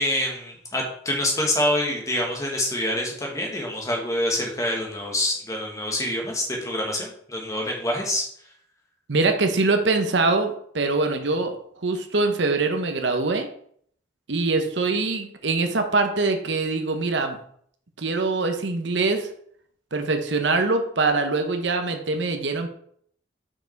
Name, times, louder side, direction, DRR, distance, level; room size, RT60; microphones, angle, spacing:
voice 1, 0.0-8.2, left 1 dB, 15° left, 0 dB, 1.5 m, -26 dB
voice 2, 9.1-13.5 14.3-17.4 18.0-19.3 19.9-22.7, right 3 dB, 70° right, 6 dB, 0.9 m, -23 dB
5.9 x 4.9 x 4.5 m, 0.64 s
head